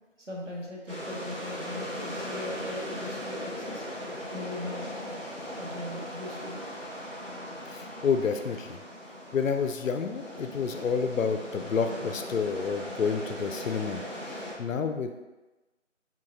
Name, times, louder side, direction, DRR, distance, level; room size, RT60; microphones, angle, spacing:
voice 1, 0.3-3.8 4.3-5.0 5.4-6.6, left 2 dB, 65° right, -3 dB, 1.1 m, -39 dB
sound 1, 0.9-14.5, equal, 45° right, 1.4 m, -38 dB
voice 2, 7.6-8.8 9.3-15.2, left 6 dB, 85° left, 7 dB, 0.5 m, -29 dB
3.7 x 2.9 x 2.5 m, 1.1 s
figure-of-eight pair, 175°, 38 cm